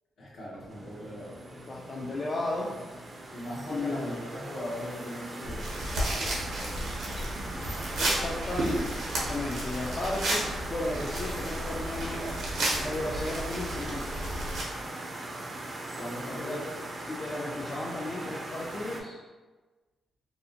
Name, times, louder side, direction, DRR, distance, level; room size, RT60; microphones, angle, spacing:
voice 1, 0.2-1.5 3.3-7.4 14.6-15.1 15.9-16.7, left 1 dB, 65° left, -6 dB, 0.9 m, -40 dB
sound 1, 0.7-19.0, right 2 dB, 35° right, 0.4 m, -40 dB
voice 2, 1.5-2.7 3.7-4.1 8.0-12.2 12.8-14.1 16.4-16.6 17.1-19.2, left 2 dB, 40° left, -4 dB, 0.3 m, -34 dB
sound 2, 5.4-14.6, right 1 dB, 80° right, 0.6 m, -32 dB
2.5 x 2.1 x 2.7 m, 1.3 s
cardioid pair, 95°, 0 cm